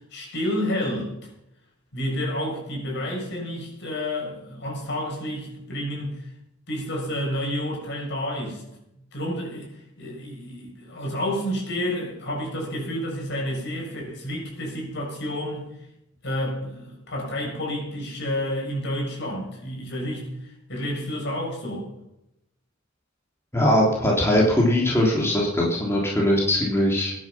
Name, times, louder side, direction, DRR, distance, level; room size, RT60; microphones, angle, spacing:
voice 1, 0.1-1.3 1.9-6.3 6.7-8.6 9.1-9.7 10.0-15.7 16.2-21.9, equal, 60° left, -1 dB, 7.2 m, -30 dB
voice 2, 23.5-27.1, left 1 dB, 15° left, -3 dB, 3.1 m, -21 dB
21.0 x 11.0 x 5.9 m, 0.83 s
head